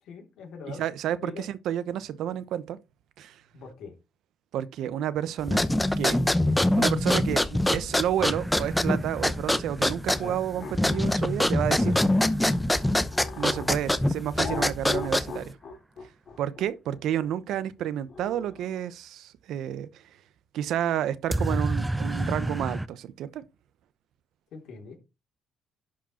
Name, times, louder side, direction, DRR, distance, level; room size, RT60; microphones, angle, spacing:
voice 1, 0.0-0.8 1.2-1.5 3.5-3.9 24.5-25.0, left 5 dB, 70° left, 3.4 m, -42 dB
voice 2, 0.8-2.8 3.2-3.4 4.5-5.7 6.0-6.2 6.7-12.0 13.4-15.5 16.4-19.9 20.5-23.4, right 10 dB, 75° right, 0.8 m, -30 dB
sound 1, 5.4-15.5, left 1 dB, 5° left, 0.7 m, -25 dB
sound 2, 8.2-13.9 21.3-22.9, right 1 dB, 10° right, 0.4 m, -33 dB
sound 3, 10.1-13.7 14.3-18.8, left 4 dB, 50° left, 2.7 m, -39 dB
11.5 x 5.0 x 4.3 m
cardioid pair, 105°, 0 cm